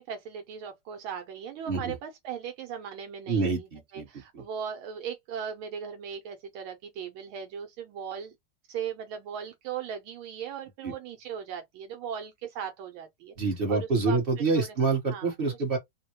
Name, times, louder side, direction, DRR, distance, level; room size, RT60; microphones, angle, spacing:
voice 1, 0.0-8.3 8.7-13.3 13.7-14.2 14.5-14.7 15.1-15.8, right 8 dB, 80° right, 1.5 m, -38 dB
voice 2, 3.3-4.1 4.3-4.4 10.8-10.9 13.4-15.8, right 4 dB, 35° right, 1.0 m, -27 dB
3.5 x 2.1 x 2.8 m
omnidirectional pair, 2.3 m